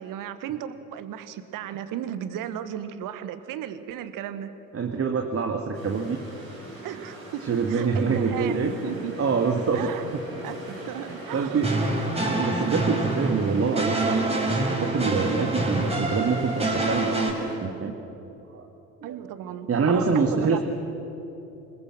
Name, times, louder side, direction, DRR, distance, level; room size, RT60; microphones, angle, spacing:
voice 1, 0.0-4.5 6.8-9.1 9.7-10.2 10.4-11.7 19.0-20.6, right 10 dB, 55° right, 12 dB, 1.4 m, -35 dB
voice 2, 4.7-6.2 7.4-8.7 9.2-10.2 10.7-10.8 11.3-11.8 12.3-17.9 18.5-18.7 19.0-19.2 19.7-20.6, right 5 dB, 35° right, 3 dB, 1.8 m, -26 dB
sound 1, 5.7-17.6, equal, 90° right, 4.0 m, -41 dB
sound 2, 11.6-17.3, right 2 dB, 15° right, 4.7 m, -26 dB
26.5 x 20.0 x 6.2 m, 3.0 s
figure-of-eight pair, 50°, 39 cm